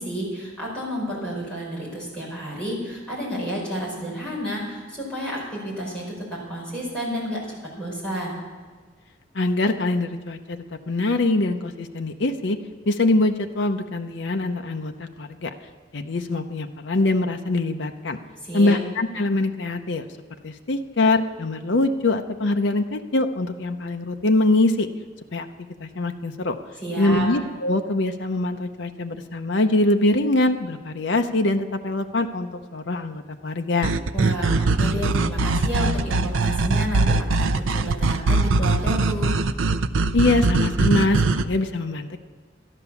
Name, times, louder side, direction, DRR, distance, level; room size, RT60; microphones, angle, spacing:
voice 1, 0.0-6.0 6.3-7.4 7.8-8.4 18.4-18.8 26.8-27.3 34.1-39.4, equal, 5° left, -6 dB, 5.0 m, -30 dB
voice 2, 9.3-12.6 12.9-15.5 15.9-18.2 18.5-20.1 20.4-24.9 25.3-25.5 25.8-26.5 27.0-33.9 40.1-42.2, left 2 dB, 65° left, 5 dB, 0.7 m, -23 dB
sound 1, 33.8-41.5, right 3 dB, 90° right, 0.5 m, -21 dB
13.0 x 11.0 x 7.0 m, 1.5 s
head